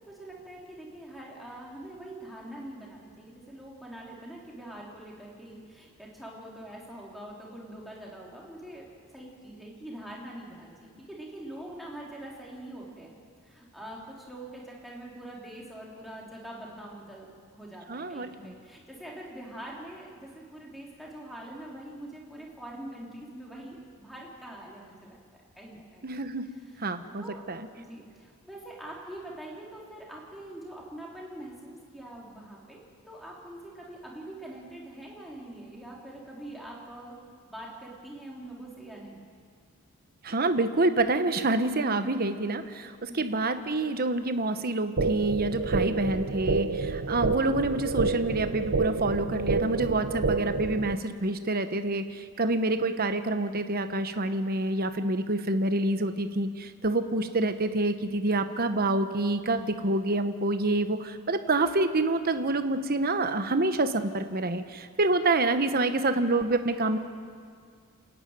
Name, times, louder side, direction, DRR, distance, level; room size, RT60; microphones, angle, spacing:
voice 1, 0.1-13.1 13.4-17.3 17.5-25.2 25.6-26.1 26.5-26.8 27.2-27.4 27.7-37.2 37.5-39.2 43.0-43.3 66.6-66.9, right 1 dB, ahead, -4 dB, 3.7 m, -44 dB
voice 2, 17.9-18.5 26.0-26.5 26.8-27.6 40.2-67.0, right 2 dB, 45° right, 9 dB, 1.0 m, -27 dB
sound 1, 45.0-51.0, right 3 dB, 60° right, 0.7 m, -29 dB
28.5 x 10.5 x 9.1 m, 2.1 s
head